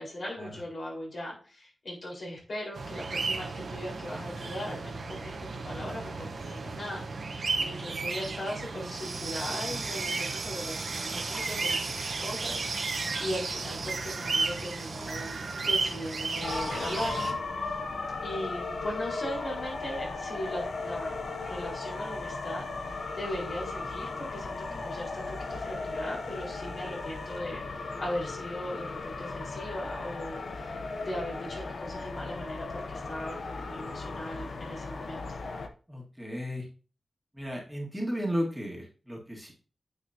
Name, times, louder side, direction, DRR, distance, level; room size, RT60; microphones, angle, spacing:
voice 1, 0.0-17.4 17.6-17.8 18.2-35.2, left 1 dB, 60° left, -4 dB, 4.4 m, -39 dB
sound 1, 2.7-17.3, right 3 dB, 70° right, 1.2 m, -33 dB
sound 2, 16.4-35.7, left 3 dB, 80° left, 0.8 m, -36 dB
voice 2, 35.9-36.7 37.3-39.5, equal, 10° right, -2 dB, 1.9 m, -34 dB
9.3 x 6.4 x 2.8 m, 0.38 s
wide cardioid pair, 110°, 0 cm